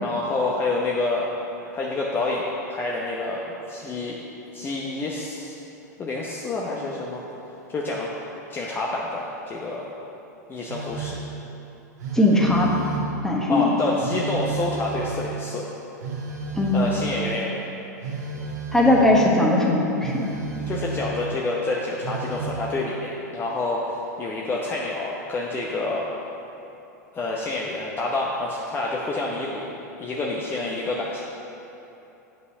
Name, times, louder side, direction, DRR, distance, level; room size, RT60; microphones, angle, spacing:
voice 1, 0.0-1.3 1.7-4.2 4.5-5.6 6.0-7.2 7.7-8.1 8.5-9.9 10.5-11.2 13.5-15.7 16.7-17.6 20.7-26.1 27.1-29.7 30.0-31.2, left 2 dB, 20° left, -3 dB, 0.8 m, -28 dB
Telephone, 10.7-11.2 12.0-13.2 14.0-15.2 16.0-17.2 18.0-19.1 20.0-21.2 22.0-22.6, right 4 dB, 65° right, 1.7 m, -32 dB
voice 2, 12.1-12.7 13.2-13.8 16.6-16.9 18.7-20.3, left 1 dB, 5° left, -2 dB, 1.3 m, -19 dB
8.2 x 5.2 x 5.6 m, 2.9 s
hypercardioid pair, 95°, 10 cm